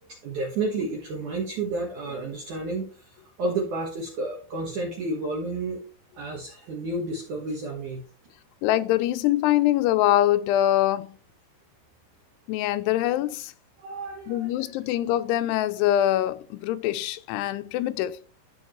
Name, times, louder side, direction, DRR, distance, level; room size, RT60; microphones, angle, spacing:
voice 1, 0.1-5.8 6.2-8.1 13.8-14.5, right 2 dB, 60° right, 2.3 m, -31 dB
voice 2, 8.6-11.1 12.5-13.5 14.3-18.2, left 13 dB, 85° left, 2.7 m, -24 dB
13.5 x 4.7 x 3.1 m
omnidirectional pair, 4.7 m